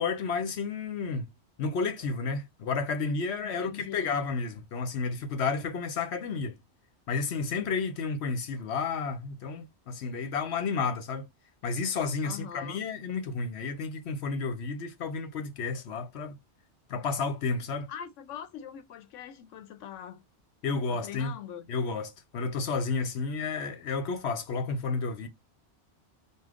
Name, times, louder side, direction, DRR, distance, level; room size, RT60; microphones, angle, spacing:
voice 1, 0.0-1.3 1.6-6.6 7.1-11.3 11.6-16.4 16.9-17.9 20.6-21.3 21.7-25.3, left 4 dB, 65° left, 1.0 m, -31 dB
voice 2, 3.4-4.2 12.2-12.8 17.9-20.2 20.9-21.7, left 9 dB, 90° left, 0.9 m, -42 dB
4.9 x 2.4 x 3.7 m
omnidirectional pair, 1.2 m